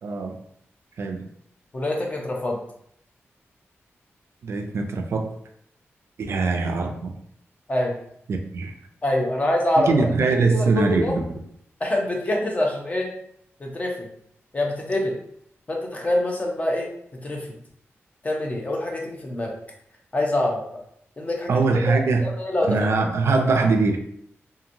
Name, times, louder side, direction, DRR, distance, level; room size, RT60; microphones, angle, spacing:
voice 1, 0.0-0.4 1.0-1.3 4.4-5.3 6.2-7.1 8.3-8.7 9.9-11.4 21.5-22.3 22.7-24.0, right 3 dB, 70° right, 4 dB, 0.4 m, -22 dB
voice 2, 1.7-2.6 7.7-8.0 9.0-10.1 10.5-11.1 11.8-13.1 13.6-14.1 14.5-15.1 15.7-16.9 17.2-17.5 18.2-19.5 20.1-20.6 21.2-21.5 21.9-22.8, left 1 dB, 30° left, 0 dB, 0.6 m, -25 dB
2.9 x 2.5 x 2.6 m, 0.69 s
wide cardioid pair, 130°, 5 cm